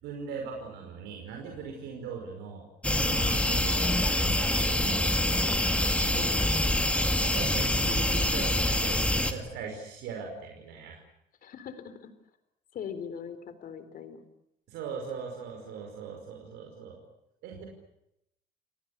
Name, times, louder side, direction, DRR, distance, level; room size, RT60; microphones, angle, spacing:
voice 1, 0.0-5.6 6.0-6.3 7.2-11.0 14.7-17.0 17.4-17.7, right 5 dB, 90° right, 2 dB, 5.3 m, -40 dB
sound 1, 2.8-9.3, left 1 dB, 5° left, 2.4 m, -26 dB
voice 2, 6.2-7.0 8.2-8.3 11.4-12.1 12.7-14.2, left 7 dB, 55° left, 11 dB, 3.9 m, -41 dB
29.0 x 18.5 x 8.5 m, 0.81 s
cardioid pair, 110°, 17 cm